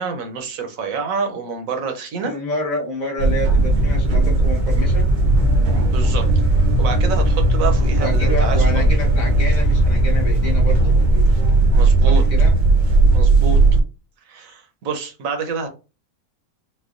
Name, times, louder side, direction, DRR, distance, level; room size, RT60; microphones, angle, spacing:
voice 1, 0.0-2.4 5.9-6.3 6.8-8.8 11.7-12.2 13.1-13.6 14.3-15.7, right 5 dB, 65° right, 1.1 m, -27 dB
voice 2, 2.2-5.1 8.0-11.0 12.0-12.5, equal, 35° left, 1.0 m, -28 dB
sound 1, 3.2-13.8, right 2 dB, 85° right, 1.4 m, -16 dB
4.3 x 2.3 x 2.4 m
omnidirectional pair, 1.6 m